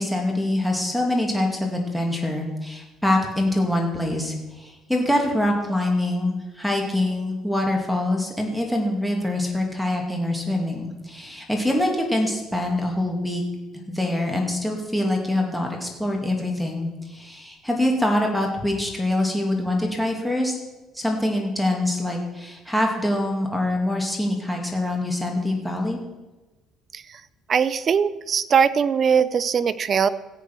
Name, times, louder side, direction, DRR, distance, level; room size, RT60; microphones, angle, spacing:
voice 1, 0.0-13.4 13.9-20.5 20.9-26.0, left 1 dB, ahead, 0 dB, 2.5 m, -24 dB
voice 2, 27.5-30.1, right 7 dB, 35° right, 15 dB, 0.6 m, -20 dB
15.5 x 8.2 x 6.1 m, 1.1 s
cardioid pair, 130°, 0 cm